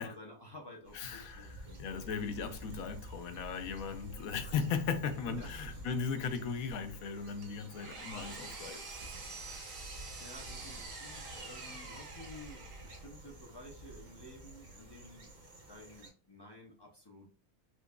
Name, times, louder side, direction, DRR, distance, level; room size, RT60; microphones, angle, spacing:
voice 1, 0.0-2.0 4.3-4.6 5.2-5.9 9.6-17.3, left 1 dB, 35° left, 0.4 m, -53 dB
voice 2, 0.9-9.1 9.4-9.8, left 6 dB, 80° left, 1.0 m, -37 dB
sound 1, 0.9-16.1, right 1 dB, 80° right, 1.9 m, -50 dB
Engine, 7.4-13.1, right 3 dB, 65° right, 1.3 m, -47 dB
4.5 x 2.5 x 2.2 m
omnidirectional pair, 1.5 m